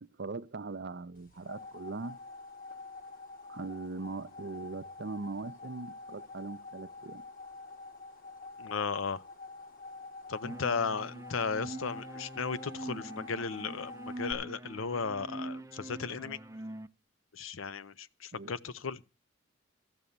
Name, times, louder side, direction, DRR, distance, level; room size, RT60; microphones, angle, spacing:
voice 1, 0.0-2.2 3.5-7.2 18.3-18.5, right 3 dB, 55° right, 0.6 m, -40 dB
sound 1, 1.1-14.3, left 3 dB, 45° left, 1.8 m, -47 dB
voice 2, 8.6-9.2 10.3-16.4 17.3-19.0, left 5 dB, 90° left, 0.7 m, -35 dB
sound 2, 10.4-16.9, right 1 dB, 15° right, 0.6 m, -43 dB
14.0 x 7.2 x 6.6 m
head